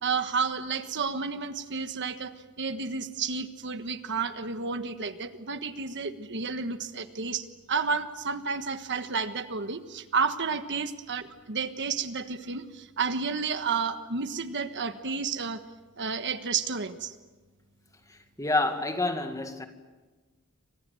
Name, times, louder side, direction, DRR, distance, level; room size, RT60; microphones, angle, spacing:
voice 1, 0.0-15.6 16.0-17.1, right 5 dB, 55° right, 1.4 m, -31 dB
voice 2, 18.4-19.7, left 2 dB, 15° left, 2.0 m, -27 dB
29.5 x 25.5 x 7.8 m
head